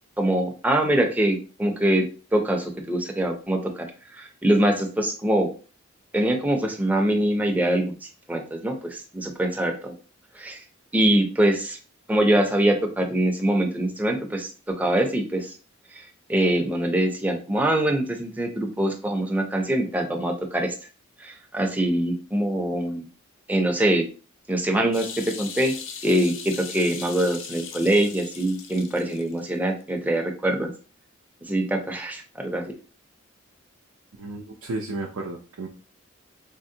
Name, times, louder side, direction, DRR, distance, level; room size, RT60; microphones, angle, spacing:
voice 1, 0.2-2.0 2.3-3.9 4.1-5.5 6.1-8.0 8.3-9.9 10.4-10.6 10.9-11.8 12.1-14.5 14.8-15.5 15.9-20.7 21.2-23.1 23.5-24.1 24.5-25.1 25.4-25.7 26.0-30.7 31.5-32.6, right 1 dB, 10° right, 2 dB, 0.4 m, -23 dB
sound 1, 24.9-29.5 29.8-29.9, left 7 dB, 65° left, 0.4 m, -38 dB
voice 2, 34.2-35.7, right 2 dB, 90° right, 0 dB, 0.4 m, -33 dB
3.5 x 2.0 x 2.6 m, 0.37 s
head